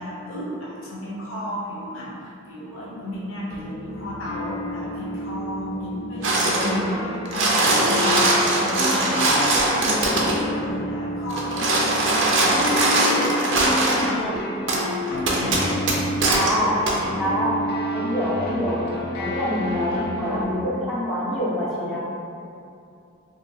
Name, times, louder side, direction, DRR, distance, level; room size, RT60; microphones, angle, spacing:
voice 1, 0.0-17.4, equal, 70° left, -6 dB, 0.8 m, -33 dB
sound 1, 3.5-20.4, left 1 dB, 50° left, 0.3 m, -30 dB
sound 2, 6.2-6.8 7.1-10.4 11.3-14.1 14.7-14.8 15.3-16.5 16.9-17.0, right 2 dB, 60° right, 0.5 m, -21 dB
voice 2, 16.3-16.7 17.2-17.6 17.9-18.8 19.2-22.0, equal, ahead, -9 dB, 0.5 m, -25 dB
3.0 x 2.7 x 2.7 m, 2.6 s
head